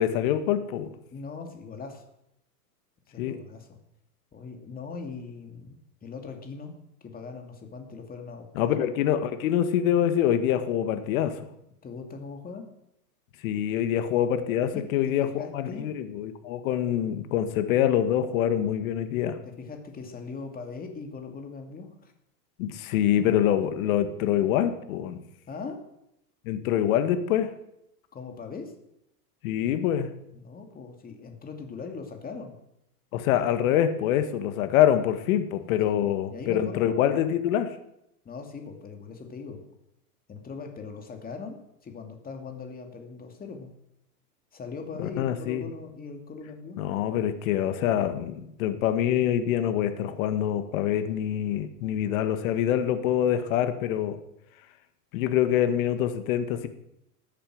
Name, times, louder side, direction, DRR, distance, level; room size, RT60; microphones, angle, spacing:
voice 1, 0.0-0.9 3.2-3.4 8.6-11.4 13.4-19.4 22.6-25.2 26.5-27.5 29.4-30.1 33.1-37.7 45.0-45.6 46.8-54.2 55.1-56.7, left 10 dB, 60° left, 9 dB, 1.8 m, -25 dB
voice 2, 1.1-2.0 3.1-3.8 4.3-6.7 7.0-8.7 11.8-12.7 14.7-15.8 19.4-22.1 25.5-25.8 28.1-28.7 30.3-32.6 35.9-37.3 38.2-39.7 40.3-41.6 41.8-43.7 44.5-46.8, left 4 dB, 20° left, 3 dB, 2.5 m, -40 dB
14.5 x 8.9 x 7.8 m, 0.81 s
hypercardioid pair, 125°, 47 cm